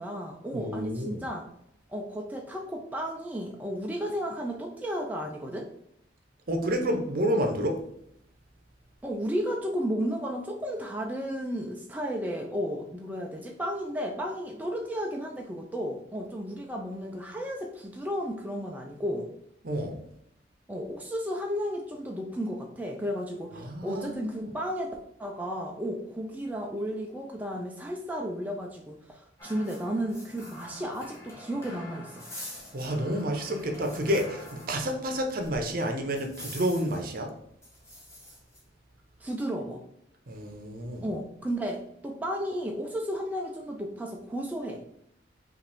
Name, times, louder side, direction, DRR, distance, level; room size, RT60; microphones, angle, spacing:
voice 1, 0.0-1.5 1.9-5.7 9.0-19.3 20.7-24.9 25.2-32.3 39.2-39.8 41.0-44.8, equal, 10° right, 0 dB, 0.4 m, -33 dB
voice 2, 0.5-1.2 6.5-7.8 19.6-19.9 23.5-24.5 32.7-37.3 40.3-41.1, equal, 50° right, 4 dB, 0.7 m, -29 dB
sound 1, 29.4-35.2 35.4-35.5 36.2-37.1 37.6-38.6, left 1 dB, 15° left, 1.1 m, -46 dB
5.2 x 2.5 x 3.4 m, 0.75 s
head